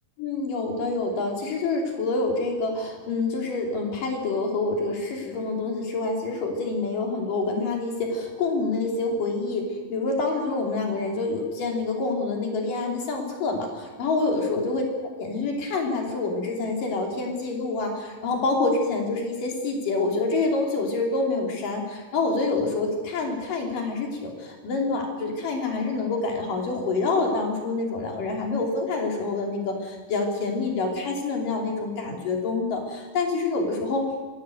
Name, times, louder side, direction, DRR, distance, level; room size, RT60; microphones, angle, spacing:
voice 1, 0.2-14.9 15.2-34.2, left 3 dB, 50° left, 1 dB, 4.6 m, -27 dB
23.5 x 16.0 x 7.9 m, 1.4 s
omnidirectional pair, 5.1 m